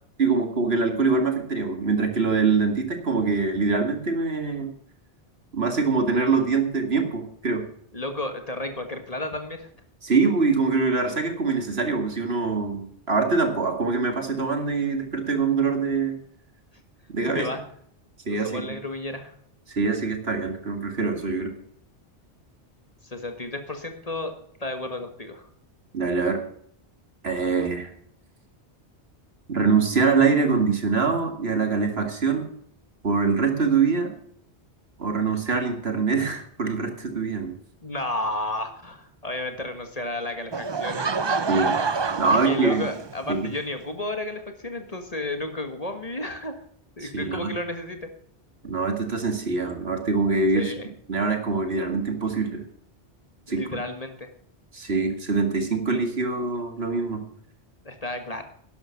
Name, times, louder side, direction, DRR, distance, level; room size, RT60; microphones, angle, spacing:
voice 1, 0.2-4.7 5.5-7.7 10.0-16.2 17.1-17.5 18.3-18.6 19.7-21.5 25.9-26.4 27.2-27.9 29.5-32.5 33.0-34.1 35.0-37.5 41.5-41.7 42.2-42.9 43.3-43.5 47.0-47.5 48.6-50.7 51.1-52.6 53.5-53.6 54.7-57.2, right 4 dB, 65° right, 5 dB, 2.3 m, -24 dB
voice 2, 7.9-9.7 17.2-17.6 18.4-19.3 23.0-24.3 24.6-25.5 37.8-41.3 42.3-46.5 47.0-48.1 50.5-50.9 53.5-54.3 57.8-58.4, left 2 dB, 35° left, 6 dB, 1.7 m, -32 dB
Laughter / Crowd, 40.5-43.4, right 4 dB, 30° right, 0.5 m, -27 dB
11.5 x 11.5 x 5.8 m, 0.62 s
omnidirectional pair, 1.1 m